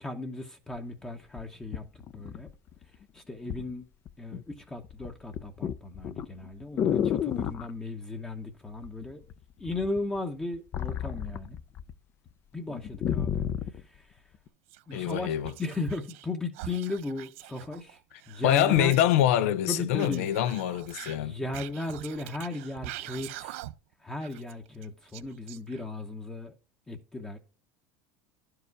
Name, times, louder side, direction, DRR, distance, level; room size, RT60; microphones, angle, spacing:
voice 1, 0.0-1.8 2.1-2.5 3.1-3.8 4.2-9.2 9.6-11.6 12.5-13.5 13.8-14.1 14.9-18.0 18.3-18.9 19.7-20.3 21.1-23.6 24.0-26.5 26.9-27.4, left 2 dB, 10° left, 0.9 m, -36 dB
sound 1, 0.7-0.8 1.4-2.8 3.5-3.7 4.1-4.5 4.8-7.7 8.8-9.3 9.6-11.9 12.3-12.4 12.7-13.8 14.5-14.6, left 9 dB, 35° left, 0.6 m, -31 dB
Whispering, 14.7-16.3 16.5-19.2 19.9-23.9 24.2-26.0, right 14 dB, 85° right, 0.6 m, -44 dB
voice 2, 14.9-15.5 18.4-21.3, left 12 dB, 90° left, 0.8 m, -25 dB
11.5 x 4.8 x 4.7 m
cardioid pair, 155°, 7 cm